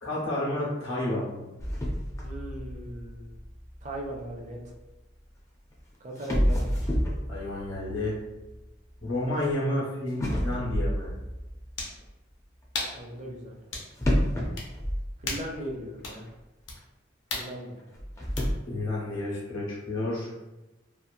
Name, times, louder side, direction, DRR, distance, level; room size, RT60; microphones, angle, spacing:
voice 1, 0.0-1.5 7.3-8.2 9.0-11.1 18.7-20.4, left 1 dB, 90° left, -6 dB, 1.1 m, -30 dB
sound 1, 1.6-4.7 5.7-5.8 6.2-9.5 10.2-12.1 14.0-15.8 16.0-16.1 16.8-16.9 17.9-18.5, equal, 15° left, 0.4 m, -30 dB
voice 2, 2.2-3.4 3.8-4.6 6.0-6.9 12.9-13.5 14.0-14.6 15.2-16.3 17.3-17.8, right 1 dB, 40° right, 0 dB, 0.5 m, -39 dB
sound 2, 10.1-10.2 11.7-12.0 12.7-13.0 13.7-13.9 14.6-14.7 15.2-15.5 16.0-16.2 16.7-16.8 17.3-17.5 18.4-18.5, left 3 dB, 65° left, 0.6 m, -34 dB
2.8 x 2.4 x 2.5 m, 1.1 s
head